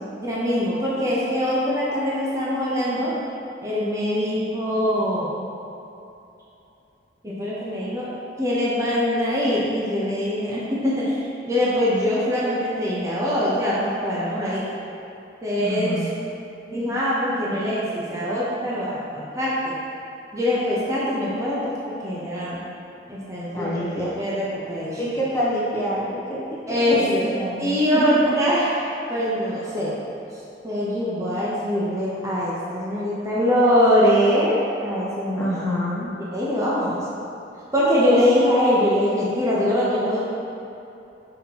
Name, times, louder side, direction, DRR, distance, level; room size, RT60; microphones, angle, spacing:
voice 1, 0.1-3.1 3.6-5.4 7.2-8.1 8.4-14.6 15.4-16.0 16.7-19.8 20.3-22.6 23.1-25.0 26.7-27.3 27.6-28.8 29.1-30.0 30.6-35.7 36.3-37.1 37.7-40.2, equal, 15° right, -8 dB, 0.8 m, -23 dB
voice 2, 15.6-16.2 23.5-24.1 24.9-26.4 26.7-27.6 35.4-36.1, equal, 15° left, -9 dB, 1.0 m, -27 dB
5.7 x 5.6 x 2.9 m, 2.8 s
head